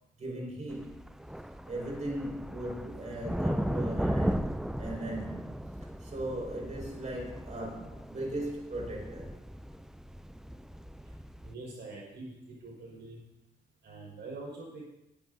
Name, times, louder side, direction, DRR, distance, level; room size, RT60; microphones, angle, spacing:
voice 1, 0.2-1.0 1.7-5.5 6.0-9.3, right 1 dB, 35° right, -2 dB, 5.9 m, -38 dB
sound 1, 0.7-11.5, equal, ahead, 0.4 m, -36 dB
voice 2, 11.4-13.2 13.8-14.8, right 2 dB, 60° right, -3 dB, 5.5 m, -44 dB
22.0 x 12.5 x 2.8 m, 0.87 s
cardioid pair, 90°, 20 cm